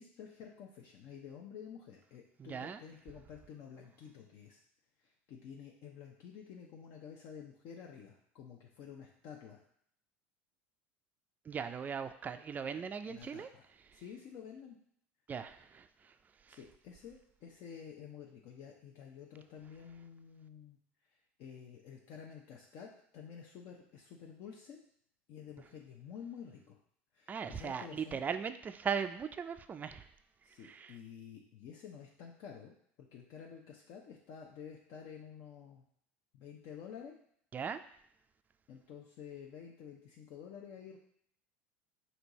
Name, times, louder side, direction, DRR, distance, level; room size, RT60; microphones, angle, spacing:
voice 1, 0.0-4.6 5.0-9.6 12.8-13.6 13.9-14.8 16.5-20.8 21.4-24.8 25.3-26.8 27.1-28.2 30.4-35.8 36.3-37.1 38.7-41.0, left 7 dB, 60° left, -1 dB, 0.6 m, -50 dB
voice 2, 2.4-2.8 11.5-13.5 15.3-15.9 27.3-30.1 30.6-30.9 37.5-37.8, right 6 dB, 25° right, 9 dB, 0.3 m, -38 dB
4.4 x 2.7 x 4.0 m, 0.67 s
hypercardioid pair, 85°, 7 cm